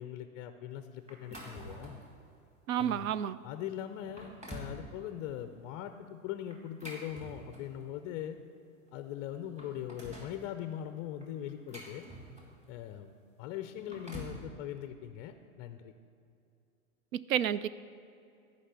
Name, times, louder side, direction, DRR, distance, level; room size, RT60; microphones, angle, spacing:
voice 1, 0.0-2.0 2.8-3.1 3.4-8.4 8.9-12.1 12.7-15.9, left 11 dB, 25° left, 9 dB, 0.4 m, -41 dB
sound 1, 1.1-2.1 2.7-2.9 3.5-3.6 4.0-4.8 6.5-7.8 8.9-9.0 9.3-10.4 11.2-12.6 13.6-14.4, right 1 dB, 15° right, 2.4 m, -47 dB
voice 2, 2.7-3.4 17.1-17.7, right 10 dB, 70° right, 17 dB, 0.6 m, -30 dB
13.5 x 5.3 x 8.1 m, 2.6 s
hypercardioid pair, 115°, 43 cm